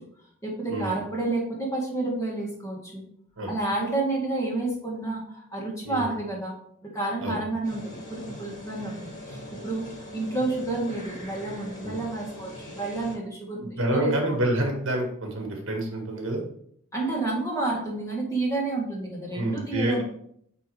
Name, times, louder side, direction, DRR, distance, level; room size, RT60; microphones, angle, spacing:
voice 1, 0.4-3.0 3.5-6.5 6.8-14.4 16.9-20.0, right 2 dB, 15° left, -3 dB, 1.9 m, -30 dB
sound 1, 7.6-13.2, left 1 dB, 35° left, 2.1 m, -41 dB
voice 2, 13.6-16.4 19.3-20.0, right 1 dB, 60° right, 2 dB, 1.6 m, -28 dB
8.5 x 3.4 x 3.5 m, 0.67 s
head